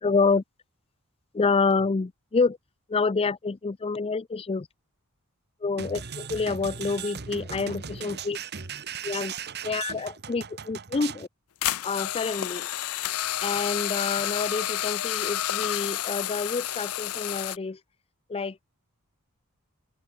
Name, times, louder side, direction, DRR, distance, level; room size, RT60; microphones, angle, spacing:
voice 1, 0.0-0.4 1.3-2.6 2.9-4.7 5.6-8.4 9.0-9.3 9.6-11.3 11.8-12.7 13.4-17.8 18.3-18.6, left 4 dB, 25° left, 0.4 m, -27 dB
sound 1, 5.8-11.3, right 6 dB, 50° right, 1.4 m, -37 dB
sound 2, 11.6-17.6, left 13 dB, 80° left, 0.6 m, -30 dB
head